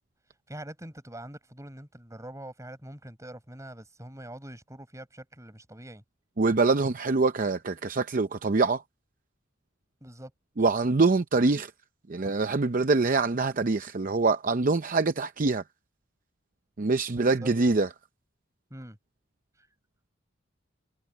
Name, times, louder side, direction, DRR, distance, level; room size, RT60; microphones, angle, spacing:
voice 1, 0.5-6.0 10.0-10.3 17.1-17.5 18.7-19.0 19.6-19.7, right 1 dB, 15° right, 6.2 m, -44 dB
voice 2, 6.4-8.8 10.6-11.7 12.1-15.6 16.8-17.9, right 3 dB, 45° right, 0.6 m, -24 dB
head